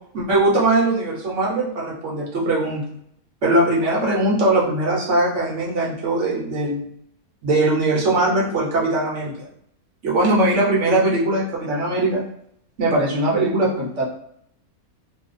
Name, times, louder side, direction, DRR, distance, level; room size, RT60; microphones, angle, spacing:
voice 1, 0.1-2.8 3.4-6.8 7.4-9.5 10.0-12.2 12.8-14.0, right 2 dB, 60° right, -4 dB, 1.0 m, -20 dB
2.7 x 2.3 x 3.8 m, 0.71 s
omnidirectional pair, 1.6 m